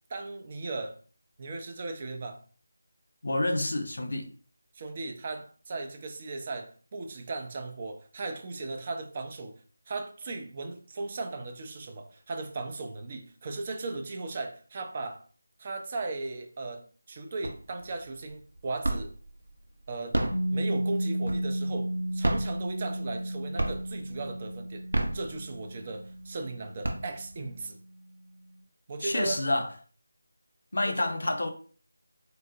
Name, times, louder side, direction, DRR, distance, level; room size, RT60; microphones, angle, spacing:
voice 1, 0.1-1.0 1.4-2.4 4.7-9.6 9.9-15.2 15.6-19.1 19.9-20.2 20.5-24.8 25.1-27.8 28.9-29.4 30.8-31.1, right 3 dB, 30° right, 0.4 m, -37 dB
voice 2, 3.2-4.3 29.0-29.7 30.7-31.5, left 2 dB, 65° left, 0.6 m, -28 dB
sound 1, 17.4-17.9 18.3-19.3 19.9-21.7 22.1-23.3 23.6-24.1 24.7-25.8 26.3-26.4 26.6-27.5, right 1 dB, 70° right, 0.6 m, -31 dB
Piano, 20.3-27.6, right 1 dB, ahead, 0.8 m, -34 dB
3.8 x 2.0 x 2.6 m
figure-of-eight pair, 165°, 0 cm